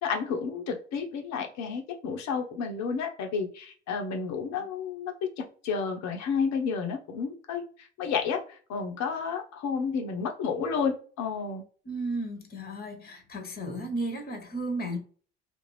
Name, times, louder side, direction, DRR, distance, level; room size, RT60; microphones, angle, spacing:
voice 1, 0.0-11.6, left 5 dB, 50° left, 4 dB, 0.9 m, -31 dB
voice 2, 11.8-15.0, right 1 dB, 25° left, 5 dB, 1.2 m, -34 dB
3.3 x 2.6 x 3.2 m, 0.42 s
figure-of-eight pair, 50°, 35 cm